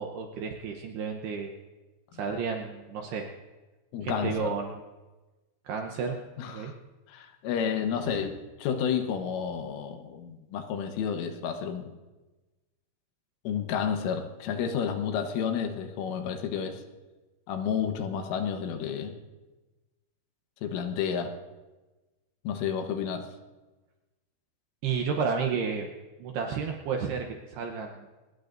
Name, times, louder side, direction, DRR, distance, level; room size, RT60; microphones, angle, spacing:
voice 1, 0.0-1.5 2.1-3.3 4.0-4.8 5.7-6.2 6.5-6.7 8.1-8.3 24.8-25.9 26.2-28.1, right 5 dB, 75° right, 3 dB, 2.5 m, -32 dB
voice 2, 3.9-4.5 6.4-6.7 7.1-11.9 13.5-16.8 17.5-19.2 20.6-21.3 22.5-23.3, left 7 dB, 80° left, 5 dB, 3.6 m, -31 dB
25.5 x 20.0 x 2.6 m, 1.2 s
omnidirectional pair, 5.8 m